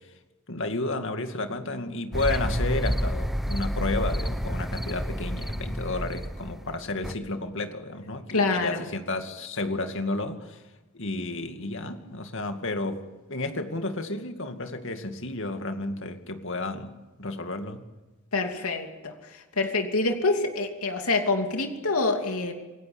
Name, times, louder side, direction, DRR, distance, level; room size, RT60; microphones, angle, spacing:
voice 1, 0.5-10.6 10.9-13.0 13.3-17.8, left 2 dB, 60° left, 7 dB, 2.3 m, -32 dB
sound 1, 2.1-7.1, equal, ahead, 1.0 m, -29 dB
voice 2, 8.3-8.8 18.3-19.1 19.6-22.5, left 3 dB, 85° left, 4 dB, 2.8 m, -26 dB
27.5 x 18.5 x 8.8 m, 1.2 s
head